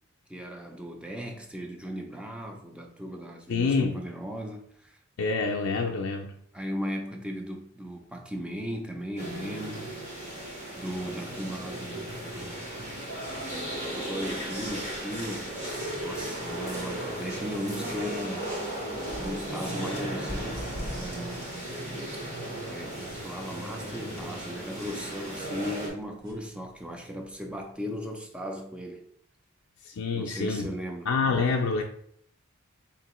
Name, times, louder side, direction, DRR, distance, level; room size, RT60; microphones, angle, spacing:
voice 1, 0.3-5.0 6.5-9.9 10.8-12.7 13.9-15.7 16.0-18.9 19.2-21.5 22.6-29.1 30.1-31.1, equal, 5° right, 2 dB, 0.5 m, -37 dB
voice 2, 3.5-4.0 5.2-6.4 29.8-30.7 31.1-31.8, left 4 dB, 65° left, 0 dB, 0.4 m, -27 dB
sound 1, 9.2-25.9, right 1 dB, 30° right, 1.1 m, -36 dB
sound 2, 14.1-27.7, left 1 dB, 55° right, 1.4 m, -48 dB
4.4 x 2.9 x 3.0 m, 0.67 s
head